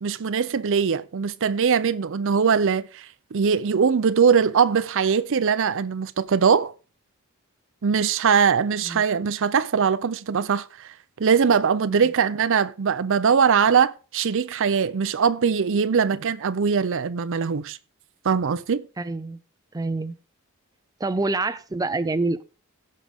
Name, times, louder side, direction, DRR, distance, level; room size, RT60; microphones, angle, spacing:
voice 1, 0.0-6.7 7.8-10.9 11.2-17.8 18.2-18.8, right 6 dB, 60° right, 0.5 m, -21 dB
voice 2, 19.0-19.4 19.7-20.1 21.0-22.4, right 2 dB, 15° right, 0.5 m, -26 dB
16.5 x 6.4 x 3.5 m
head